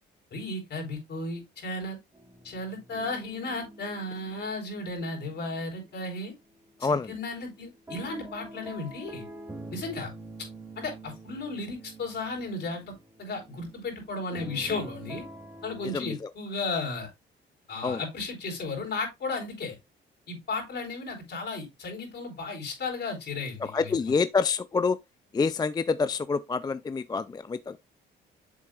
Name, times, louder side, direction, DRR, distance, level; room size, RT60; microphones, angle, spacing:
voice 1, 0.3-2.0 2.4-6.3 6.8-9.2 9.7-10.1 10.4-10.5 10.8-12.9 13.2-15.2 15.6-17.1 17.7-19.8 20.3-24.1, left 3 dB, 60° left, 4.2 m, -34 dB
sound 1, 2.1-6.2 6.5-16.0, right 2 dB, 15° right, 1.6 m, -46 dB
voice 2, 23.6-25.0 25.3-27.8, left 4 dB, 20° left, 0.3 m, -27 dB
7.6 x 7.3 x 2.4 m
cardioid pair, 90°, 20 cm